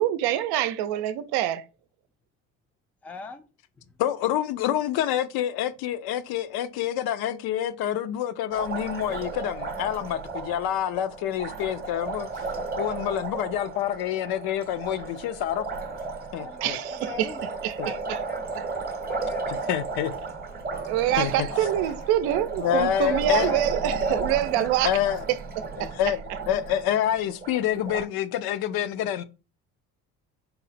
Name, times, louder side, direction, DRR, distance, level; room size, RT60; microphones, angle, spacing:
voice 1, 0.0-1.7 16.6-17.3 17.6-18.2 18.5-18.7 20.9-25.0 25.3-25.4 25.8-26.1, right 12 dB, 75° right, 0.6 m, -26 dB
voice 2, 3.0-3.5 3.8-4.0 16.4-16.6 17.0-18.7 19.0-19.5 23.0-23.6 24.1-24.7, left 4 dB, 5° left, 0.4 m, -41 dB
voice 3, 4.0-12.5 12.8-15.7 16.3-16.8 17.8-17.9 19.7-20.1 21.2-21.3 22.6-23.5 24.8-25.2 25.8-26.2 26.5-29.2, left 11 dB, 70° left, 0.5 m, -27 dB
Liquid, 8.5-28.0, right 4 dB, 25° right, 0.7 m, -33 dB
4.1 x 2.0 x 4.0 m
supercardioid pair, 90°, 39 cm